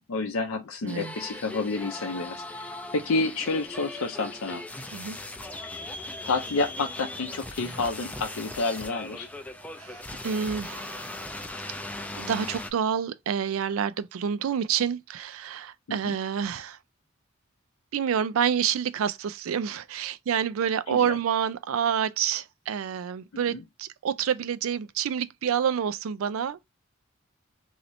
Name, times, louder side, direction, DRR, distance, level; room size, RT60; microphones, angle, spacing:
voice 1, 0.1-2.4 2.9-4.6 5.6-5.8 6.2-9.3 15.9-16.2 20.9-21.1 23.5-23.6, left 3 dB, 80° left, 0.5 m, -29 dB
voice 2, 0.8-1.1 4.9-5.2 5.5-5.6 9.8-11.2 12.2-16.8 17.9-26.6, right 8 dB, 75° right, 0.4 m, -28 dB
sound 1, 0.9-12.7, left 1 dB, 5° left, 0.4 m, -39 dB
3.0 x 2.8 x 2.6 m
head